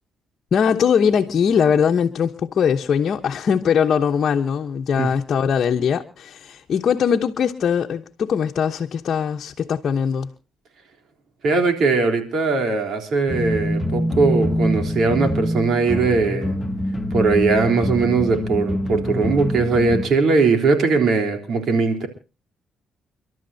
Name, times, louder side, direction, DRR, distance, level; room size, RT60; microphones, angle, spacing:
voice 1, 0.5-10.3, left 7 dB, 55° left, 1.0 m, -21 dB
voice 2, 11.4-16.6 17.1-22.1, right 4 dB, 65° right, 3.6 m, -20 dB
sound 1, 13.3-20.0, equal, 15° left, 1.5 m, -25 dB
30.0 x 12.5 x 2.8 m
cardioid pair, 90°, 0 cm